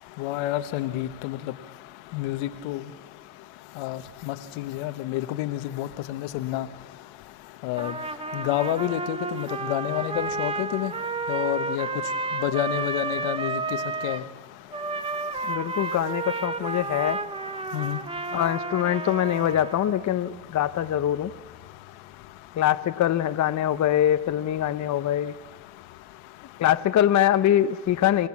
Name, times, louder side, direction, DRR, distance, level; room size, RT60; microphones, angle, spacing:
voice 1, 0.2-1.4 2.1-2.8 3.8-6.7 7.6-7.9 8.3-10.9 11.3-11.9 12.4-13.6 14.0-14.2 17.7-18.0, left 14 dB, 80° left, 10 dB, 1.3 m, -29 dB
Trumpet, 7.8-14.2 14.7-20.0, right 3 dB, 10° right, 0.8 m, -31 dB
voice 2, 15.4-17.2 18.3-21.3 22.5-25.3 26.6-28.3, left 11 dB, 40° left, 11 dB, 0.8 m, -23 dB
29.0 x 16.0 x 7.3 m, 1.4 s
supercardioid pair, 105°, 47 cm